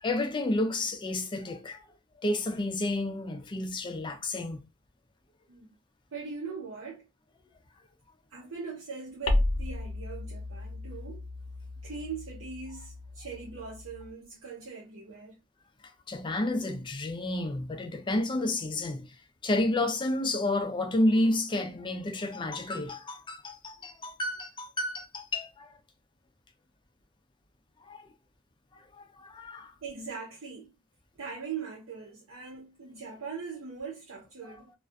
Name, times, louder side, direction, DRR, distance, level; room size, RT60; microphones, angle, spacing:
voice 1, 0.0-1.8 2.2-4.6 16.1-19.1 19.4-25.7 27.9-28.1 29.0-29.7, left 1 dB, 25° left, 0.3 m, -30 dB
voice 2, 6.1-7.1 8.3-11.3 11.8-15.4 29.8-30.7 31.2-34.7, right 5 dB, 80° right, 0.7 m, -41 dB
sound 1, 9.3-14.1, left 1 dB, 80° left, 0.5 m, -33 dB
2.3 x 2.1 x 2.5 m
head